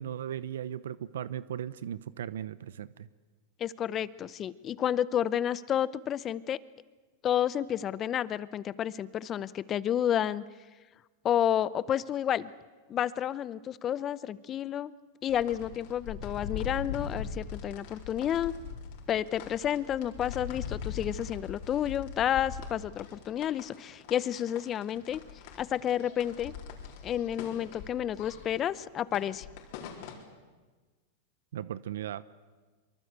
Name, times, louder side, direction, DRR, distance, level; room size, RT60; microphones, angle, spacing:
voice 1, 0.0-3.1 31.5-32.2, right 10 dB, 90° right, 17 dB, 0.8 m, -37 dB
voice 2, 3.6-6.6 7.2-10.4 11.2-12.5 12.9-14.9 15.2-18.5 19.1-25.2 25.6-26.5 27.0-29.5, left 10 dB, 25° left, 18 dB, 0.7 m, -30 dB
sound 1, 15.3-30.2, left 7 dB, 55° left, 4.2 m, -42 dB
24.0 x 23.0 x 8.2 m, 1.3 s
supercardioid pair, 145°, 0 cm